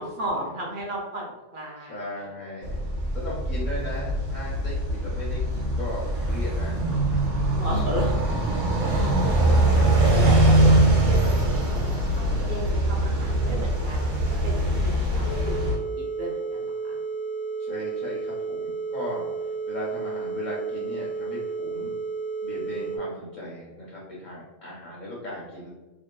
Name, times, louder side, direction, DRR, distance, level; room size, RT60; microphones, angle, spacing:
voice 1, 0.0-2.0 7.6-8.4 8.8-9.3 10.0-11.9 12.2-15.6 16.2-16.4 16.6-16.7, equal, 60° right, -2 dB, 0.5 m, -34 dB
voice 2, 1.8-2.8 3.1-7.8 8.8-9.6 17.6-21.9 22.4-25.7, left 1 dB, 50° left, -5 dB, 0.6 m, -37 dB
sound 1, 2.6-15.8, right 1 dB, 85° right, 1.0 m, -22 dB
sound 2, 15.2-23.0, right 4 dB, 85° left, 0.9 m, -32 dB
2.7 x 2.3 x 2.2 m, 1.1 s
omnidirectional pair, 1.3 m